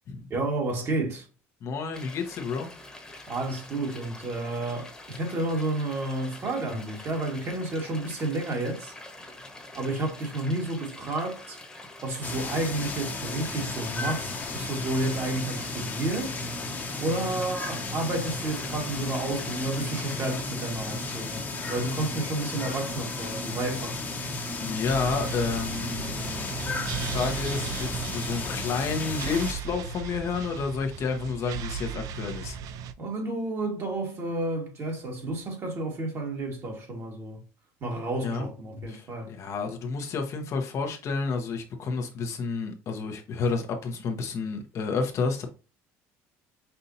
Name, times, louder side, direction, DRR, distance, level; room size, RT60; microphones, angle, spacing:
voice 1, 0.3-1.3 3.3-8.9 9.2-9.3 9.7-11.6 12.0-16.4 17.0-24.0 33.0-37.4 37.8-39.3, right 2 dB, 45° right, 1.9 m, -31 dB
voice 2, 1.6-2.7 24.6-26.5 26.9-32.6 38.2-38.5 38.9-45.5, left 4 dB, 50° left, 1.0 m, -30 dB
sound 1, 1.9-20.4, left 2 dB, 10° left, 1.3 m, -46 dB
sound 2, 12.2-29.5, left 3 dB, 30° left, 1.1 m, -34 dB
sound 3, 24.8-32.9, right 7 dB, 65° right, 0.4 m, -36 dB
5.5 x 2.6 x 2.7 m
supercardioid pair, 100°, 6 cm